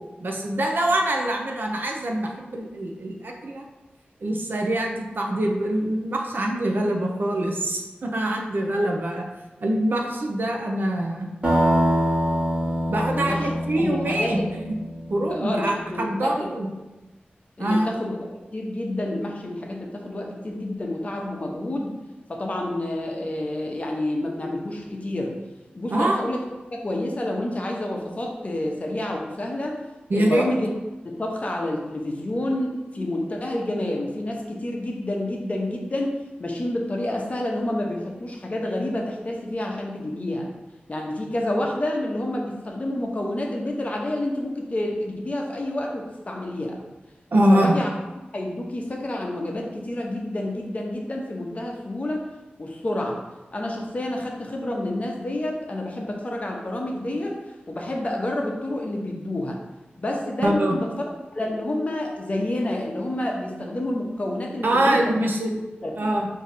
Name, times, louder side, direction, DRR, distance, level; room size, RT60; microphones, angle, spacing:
voice 1, 0.2-3.7 4.2-9.3 9.6-11.3 12.9-14.6 15.1-16.7 17.6-17.9 25.9-26.2 30.1-30.5 47.3-47.7 60.4-60.8 64.6-65.6 66.0-66.3, right 1 dB, 65° right, 1 dB, 0.6 m, -24 dB
sound 1, 11.4-15.2, equal, 35° right, 1.3 m, -24 dB
voice 2, 13.2-13.5 13.8-14.3 15.3-16.5 17.6-21.9 22.3-25.4 25.7-26.4 26.7-29.8 30.1-30.7 31.0-40.5 40.9-46.8 47.5-47.9 48.3-52.2 52.6-53.2 53.5-57.4 57.7-59.6 60.0-60.9 61.3-65.1 65.8-66.2, left 1 dB, 40° left, 0 dB, 0.7 m, -29 dB
4.8 x 2.7 x 4.1 m, 1.1 s
wide cardioid pair, 100°, 4 cm